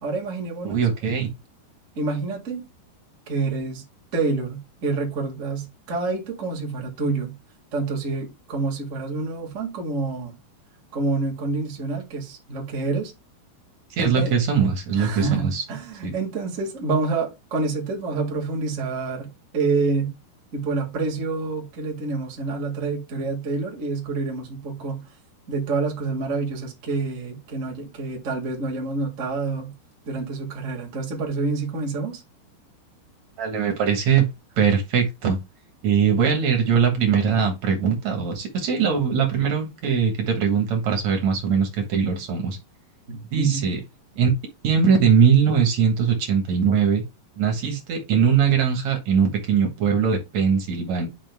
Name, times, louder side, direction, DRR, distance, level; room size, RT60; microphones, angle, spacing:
voice 1, 0.0-0.9 1.9-2.6 3.3-3.8 4.1-7.4 7.7-10.4 10.9-13.1 14.1-14.4 14.9-20.1 20.5-25.0 25.5-29.7 30.1-32.2 43.1-43.6, right 3 dB, 80° right, 0.7 m, -27 dB
voice 2, 0.6-1.3 14.0-15.6 16.0-16.1 33.4-34.3 34.6-35.4 35.8-42.6 43.3-43.8 44.2-44.3 44.6-47.0 47.4-51.1, right 6 dB, 60° right, 2.1 m, -21 dB
10.0 x 5.6 x 2.3 m
omnidirectional pair, 4.9 m